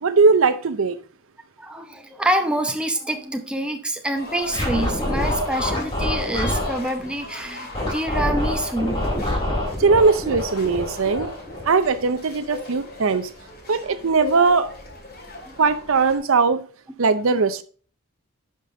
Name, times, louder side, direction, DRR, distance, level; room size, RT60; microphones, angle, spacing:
voice 1, 0.0-1.0 9.8-11.3 11.7-13.3 13.7-14.7 15.6-16.6 17.0-17.6, right 4 dB, 65° right, 0.6 m, -19 dB
voice 2, 1.6-9.0 15.4-15.6, right 1 dB, 5° right, 0.9 m, -26 dB
sound 1, 4.2-16.2, left 2 dB, 45° left, 2.4 m, -37 dB
Scratching (performance technique), 4.5-6.8 7.7-12.0, left 1 dB, 20° left, 3.4 m, -26 dB
11.0 x 5.1 x 3.8 m
head